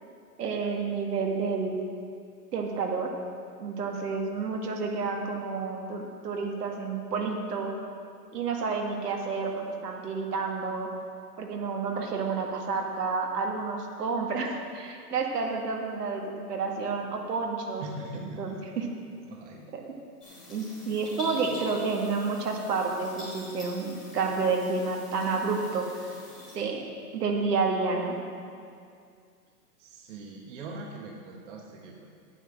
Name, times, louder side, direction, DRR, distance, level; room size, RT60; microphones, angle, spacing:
voice 1, 0.4-1.8 2.5-3.1 3.6-7.7 8.3-9.5 9.8-10.9 11.4-17.8 18.1-18.9 19.7-19.9 20.5-25.9 26.5-26.8 27.1-28.2, right 4 dB, 75° right, 1 dB, 2.0 m, -30 dB
voice 2, 17.8-18.6 19.3-19.7 29.8-32.1, right 2 dB, 50° right, 0 dB, 1.2 m, -41 dB
sound 1, 20.2-26.6, left 1 dB, ahead, 0.3 m, -45 dB
9.2 x 7.7 x 7.4 m, 2.3 s
hypercardioid pair, 140°, 48 cm